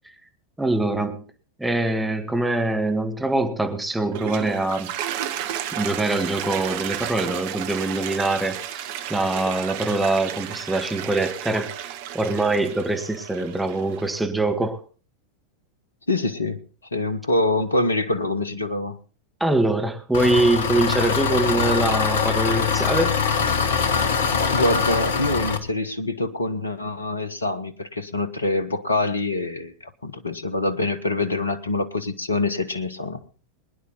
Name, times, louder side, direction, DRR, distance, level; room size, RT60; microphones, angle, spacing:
voice 1, 0.6-1.2 1.6-4.9 5.7-11.7 12.1-14.8 19.4-23.2, right 2 dB, 5° right, 4 dB, 1.9 m, -23 dB
Toilet flush, 3.9-14.2, right 10 dB, 50° right, 1.2 m, -33 dB
voice 2, 16.1-16.6 16.9-19.0 24.4-33.2, left 2 dB, 75° left, 12 dB, 1.4 m, -25 dB
Engine, 20.1-25.6, left 6 dB, 60° left, 1.5 m, -23 dB
23.0 x 10.0 x 4.0 m, 0.38 s
figure-of-eight pair, 90°, 0 cm